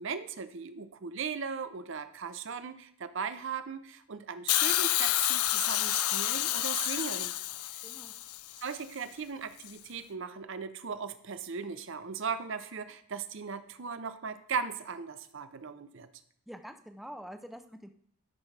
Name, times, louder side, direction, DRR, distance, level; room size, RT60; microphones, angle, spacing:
voice 1, 0.0-7.3 8.6-16.1, right 6 dB, 55° right, 12 dB, 0.6 m, -38 dB
Hiss, 4.5-8.6 9.6-9.7, left 14 dB, 80° left, 0.4 m, -29 dB
voice 2, 7.8-8.1 16.5-17.9, equal, ahead, 6 dB, 0.4 m, -46 dB
12.5 x 6.0 x 3.3 m, 0.67 s
head